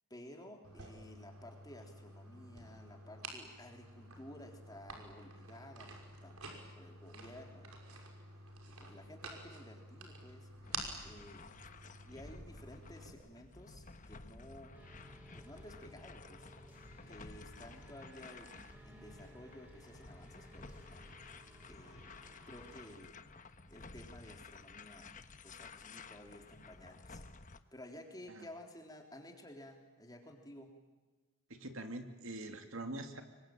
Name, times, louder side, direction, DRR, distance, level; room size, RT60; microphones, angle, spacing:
voice 1, 0.1-8.0 8.8-10.5 11.0-11.5 12.0-14.8 15.3-16.5 17.1-21.0 21.7-22.1 22.5-23.2 23.7-25.1 25.4-27.2 27.7-30.7, left 1 dB, 20° left, 3 dB, 3.5 m, -54 dB
sound 1, 0.6-13.1, right 3 dB, 90° right, 5.7 m, -50 dB
sound 2, 10.6-27.6, left 3 dB, 35° left, 1.1 m, -53 dB
sound 3, 14.7-23.0, equal, 10° right, 6.5 m, -58 dB
voice 2, 31.5-33.2, right 1 dB, 65° right, 6 dB, 2.7 m, -44 dB
26.0 x 23.5 x 9.0 m, 1.3 s
head